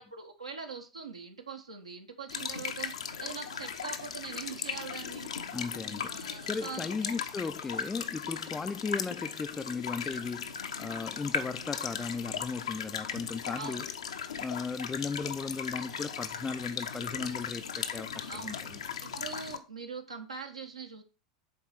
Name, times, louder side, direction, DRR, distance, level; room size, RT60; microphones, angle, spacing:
voice 1, 0.0-2.9 3.2-5.3 6.0-7.2 13.5-13.9 18.3-18.6 19.0-21.0, right 5 dB, 85° right, 1.3 m, -42 dB
sound 1, 2.3-19.6, left 7 dB, 75° left, 0.8 m, -37 dB
voice 2, 5.5-6.2 6.5-13.9 14.4-18.8, left 4 dB, 15° left, 0.4 m, -36 dB
7.4 x 4.3 x 5.9 m
figure-of-eight pair, 85°, 3 cm